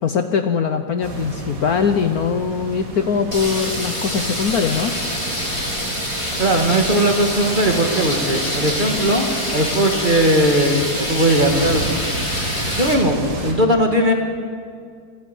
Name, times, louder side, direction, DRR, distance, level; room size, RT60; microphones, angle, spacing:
voice 1, 0.0-4.9, left 6 dB, 60° left, 8 dB, 1.2 m, -21 dB
sound 1, 1.0-13.5, right 2 dB, 75° right, 3.3 m, -32 dB
sound 2, 3.3-12.9, left 1 dB, 15° left, 3.6 m, -26 dB
voice 2, 6.4-11.9 12.7-14.1, right 1 dB, 25° right, 3 dB, 1.8 m, -18 dB
27.5 x 10.5 x 9.2 m, 2.1 s
omnidirectional pair, 2.1 m